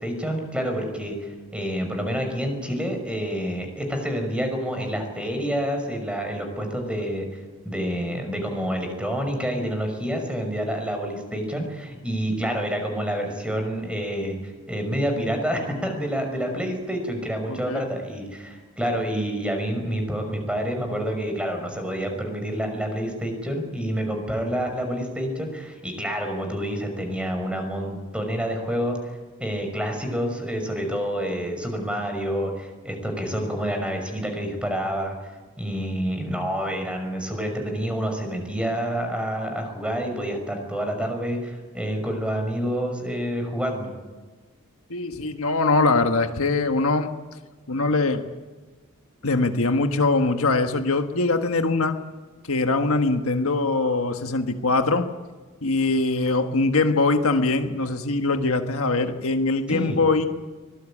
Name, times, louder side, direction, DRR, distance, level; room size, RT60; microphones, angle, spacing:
voice 1, 0.0-7.4 7.6-29.0 29.4-35.2 35.6-43.9 59.7-60.0, equal, 5° right, 4 dB, 5.8 m, -28 dB
voice 2, 17.5-17.8 44.9-47.1 47.7-48.2 49.2-52.0 52.5-55.1 55.6-60.3, left 3 dB, 70° left, 6 dB, 1.6 m, -22 dB
24.5 x 19.0 x 8.7 m, 1.3 s
head